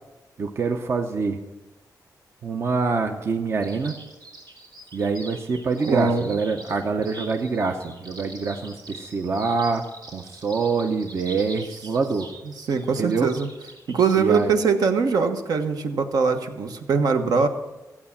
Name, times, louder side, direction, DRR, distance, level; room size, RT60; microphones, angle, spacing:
voice 1, 0.4-1.4 2.4-4.0 4.9-12.3 13.0-13.3 14.2-14.6, right 4 dB, 40° right, 4 dB, 0.8 m, -25 dB
sound 1, 3.6-14.4, right 2 dB, 90° right, 3.6 m, -43 dB
voice 2, 5.9-6.2 12.7-13.5 13.9-17.5, right 5 dB, 65° right, 6 dB, 1.2 m, -22 dB
15.0 x 8.7 x 7.2 m, 1.1 s
wide cardioid pair, 175°, 7 cm